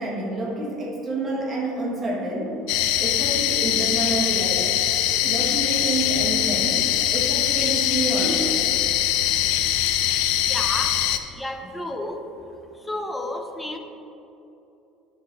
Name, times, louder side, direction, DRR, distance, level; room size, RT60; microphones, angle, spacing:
voice 1, 0.0-2.6 3.0-4.8 5.2-6.8 7.1-8.6, right 2 dB, 20° right, -3 dB, 1.4 m, -28 dB
sound 1, 2.7-11.2, left 12 dB, 65° left, 0.5 m, -22 dB
voice 2, 10.5-10.9 11.3-12.2 12.9-13.8, left 1 dB, 5° left, 4 dB, 0.5 m, -31 dB
9.7 x 5.9 x 3.9 m, 2.9 s
cardioid pair, 180°, 0 cm